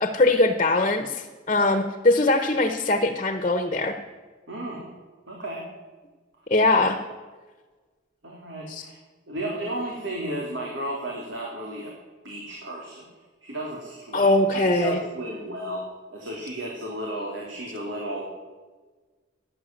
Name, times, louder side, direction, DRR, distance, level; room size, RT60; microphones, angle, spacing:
voice 1, 0.0-4.0 6.5-7.0 8.7-8.8 14.1-15.0, left 2 dB, 35° left, 8 dB, 1.2 m, -21 dB
voice 2, 4.5-4.9 5.3-5.7 8.2-9.0 9.3-11.9 12.2-13.1 13.4-18.2, right 1 dB, 90° right, -2 dB, 3.6 m, -33 dB
16.5 x 10.5 x 7.7 m, 1.3 s
head